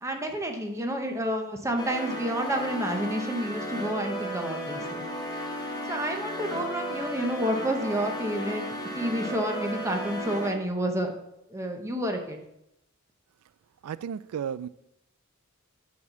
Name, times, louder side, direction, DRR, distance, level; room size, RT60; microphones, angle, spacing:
voice 1, 0.0-5.0 5.9-8.6 8.9-11.2 11.5-12.4, right 1 dB, 15° right, 0.8 m, -29 dB
sound 1, 1.8-10.5, equal, 20° left, 1.4 m, -34 dB
voice 2, 13.8-14.7, right 8 dB, 90° right, 0.3 m, -33 dB
8.4 x 4.3 x 6.9 m
head